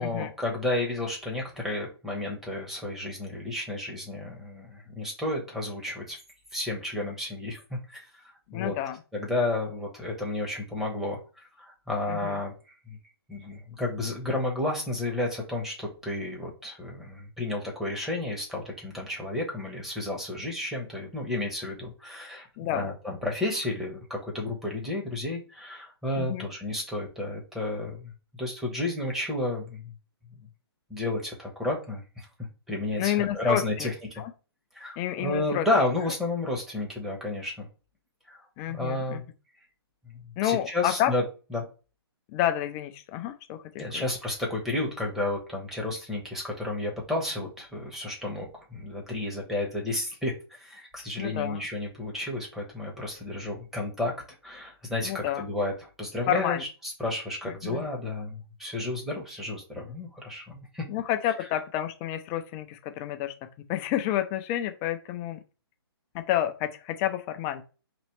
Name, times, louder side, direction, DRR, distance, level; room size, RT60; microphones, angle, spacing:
voice 1, 0.0-6.2 6.5-8.0 8.5-8.7 9.1-11.2 11.6-12.5 12.9-13.0 13.3-28.1 28.4-29.9 30.9-32.0 32.7-34.2 34.7-37.7 38.3-39.2 40.1-41.2 41.5-41.6 43.8-54.1 54.4-60.8, left 2 dB, ahead, -3 dB, 1.0 m, -32 dB
voice 2, 8.5-9.0 12.1-12.4 22.6-22.9 26.2-26.5 33.0-33.9 34.2-34.3 35.0-35.7 38.6-39.2 40.4-41.1 42.3-44.0 51.2-51.6 55.0-55.4 56.3-56.6 57.4-57.9 60.9-63.3 63.7-65.4 66.1-67.6, left 12 dB, 20° left, 8 dB, 0.3 m, -29 dB
4.1 x 3.0 x 3.2 m, 0.34 s
hypercardioid pair, 140°, 14 cm